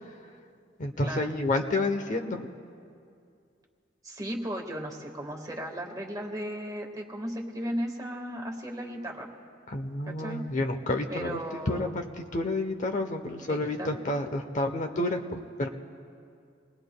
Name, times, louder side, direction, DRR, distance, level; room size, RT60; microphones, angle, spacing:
voice 1, 0.8-2.5 9.7-11.4 11.7-15.7, left 2 dB, 45° left, 5 dB, 0.8 m, -30 dB
voice 2, 4.0-9.3 10.1-10.4 11.1-11.9 13.4-13.9, equal, 20° right, 1 dB, 1.6 m, -36 dB
28.5 x 20.5 x 2.2 m, 2.4 s
head